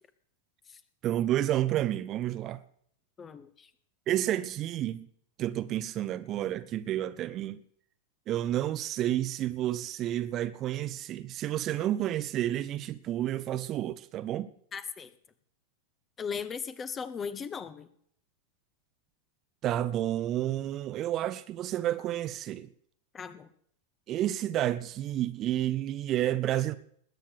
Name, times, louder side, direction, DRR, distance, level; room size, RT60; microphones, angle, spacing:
voice 1, 1.0-2.6 4.1-5.1 5.4-7.6 8.3-14.5 19.6-22.7 24.1-26.7, right 13 dB, 35° right, 0.8 m, -30 dB
voice 2, 3.2-3.7 14.7-15.1 16.2-17.9 23.1-23.5, left 6 dB, 20° left, 1.3 m, -37 dB
20.5 x 9.3 x 6.8 m
figure-of-eight pair, 90°, 0 cm